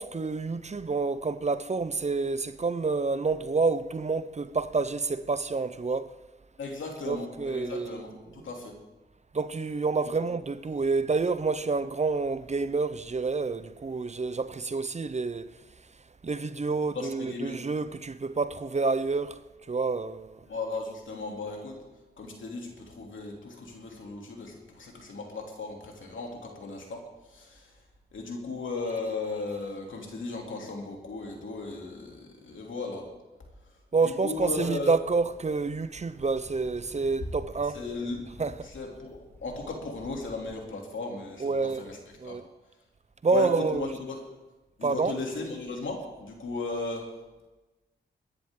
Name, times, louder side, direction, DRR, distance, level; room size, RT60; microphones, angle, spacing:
voice 1, 0.0-6.1 7.1-8.0 9.3-15.5 16.2-19.4 19.7-20.4 33.9-37.8 38.4-38.7 41.4-41.8 42.2-42.4 43.2-43.9 44.8-45.2, right 4 dB, 35° right, 0.7 m, -28 dB
voice 2, 6.6-8.7 16.9-17.6 20.5-21.8 22.2-27.0 27.3-27.7 28.1-33.0 34.2-34.9 37.7-38.2 38.6-41.5 41.7-42.0 42.2-42.4 43.3-44.2 44.8-47.1, left 3 dB, 75° left, 3.0 m, -36 dB
Ocean, 34.4-40.6, left 1 dB, 15° left, 2.2 m, -51 dB
22.0 x 10.5 x 3.8 m
cardioid pair, 60°, 20 cm